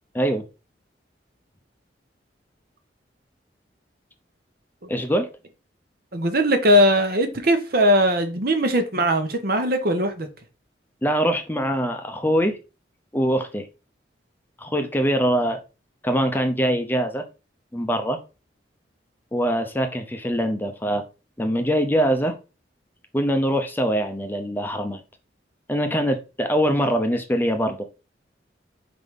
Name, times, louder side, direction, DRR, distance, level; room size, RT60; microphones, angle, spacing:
voice 1, 4.9-5.3 11.0-12.6 13.1-13.7 14.6-15.6 16.0-17.2 17.7-18.2 19.3-21.0 21.4-22.3 23.1-25.0 25.7-27.8, equal, 10° left, 0.7 m, -23 dB
voice 2, 6.1-10.3, equal, 55° right, 1.1 m, -20 dB
4.7 x 4.1 x 5.1 m
head